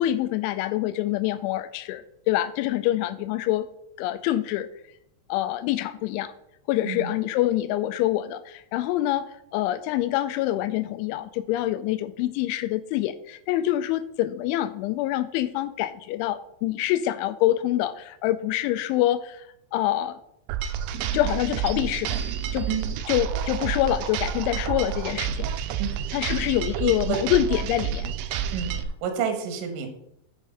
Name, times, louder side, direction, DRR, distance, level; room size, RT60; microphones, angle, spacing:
voice 1, 0.0-3.7 4.0-4.7 5.3-6.3 6.7-9.3 9.5-19.5 19.7-20.2 21.1-22.2 22.5-22.7 23.1-25.5 26.1-28.1, left 14 dB, 85° left, 12 dB, 2.8 m, -26 dB
sound 1, 20.5-28.8, right 8 dB, 85° right, 2.6 m, -29 dB
voice 2, 26.7-27.2 28.5-28.7 29.0-29.9, right 7 dB, 65° right, 6 dB, 2.3 m, -29 dB
7.9 x 6.5 x 5.5 m, 0.77 s
omnidirectional pair, 5.6 m